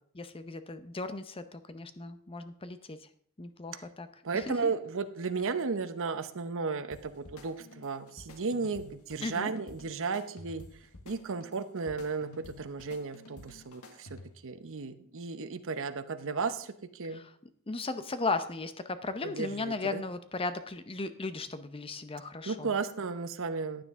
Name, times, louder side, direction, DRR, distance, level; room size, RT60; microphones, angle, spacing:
voice 1, 0.1-3.1 3.4-4.1 4.3-4.7 9.2-9.5 17.1-17.3 17.7-22.7, left 3 dB, 25° left, 11 dB, 0.7 m, -36 dB
voice 2, 4.2-10.6 11.1-17.2 19.2-20.0 22.5-23.8, right 4 dB, 60° right, 11 dB, 0.8 m, -34 dB
sound 1, 6.9-14.5, left 2 dB, 75° left, 1.4 m, -51 dB
15.0 x 9.6 x 3.6 m, 0.64 s
head